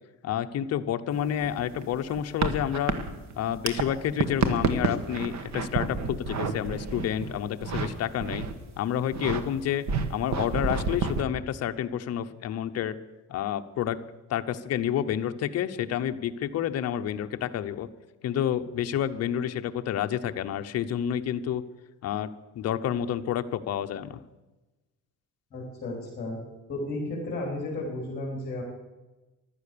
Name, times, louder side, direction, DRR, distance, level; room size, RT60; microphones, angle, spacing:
voice 1, 0.2-3.0 3.4-8.4 8.8-13.0 13.3-14.0 14.3-17.9 18.2-21.7 22.0-22.3 22.5-24.2, left 10 dB, 50° left, 8 dB, 0.8 m, -29 dB
plastic ruler, 1.1-7.9 8.2-8.6 9.0-9.4 9.9-11.2, right 5 dB, 55° right, 1.4 m, -29 dB
voice 2, 25.5-26.4 26.7-28.6, left 2 dB, 25° left, -3 dB, 3.8 m, -33 dB
15.0 x 12.0 x 6.8 m, 1.1 s
cardioid pair, 180°, 34 cm